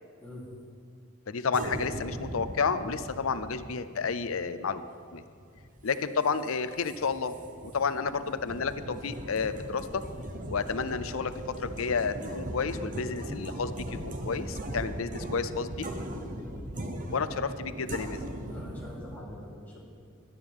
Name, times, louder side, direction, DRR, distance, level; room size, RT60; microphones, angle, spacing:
voice 1, 1.3-4.8 5.1-5.2 5.8-7.4 7.6-10.0 10.5-11.3 11.6-15.9 17.1-18.2, left 5 dB, 85° left, 12 dB, 0.6 m, -31 dB
sound 1, 1.5-19.2, right 1 dB, 40° right, 1.0 m, -39 dB
voice 2, 18.5-19.8, left 1 dB, 10° left, -7 dB, 3.3 m, -45 dB
17.0 x 12.0 x 3.6 m, 2.3 s
head